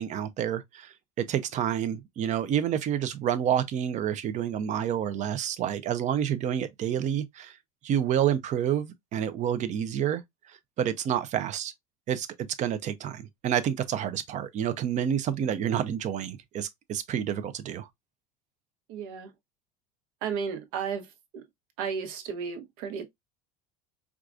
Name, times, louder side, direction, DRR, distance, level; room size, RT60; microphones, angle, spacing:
voice 1, 0.0-7.5 7.8-10.2 10.8-11.7 12.1-12.3 12.6-17.9, right 9 dB, 40° right, 0.6 m, -29 dB
voice 2, 18.9-19.3 20.2-21.1 21.3-21.4 21.8-23.1, right 6 dB, 70° right, 1.0 m, -33 dB
4.6 x 2.4 x 2.4 m
supercardioid pair, 105°, 19 cm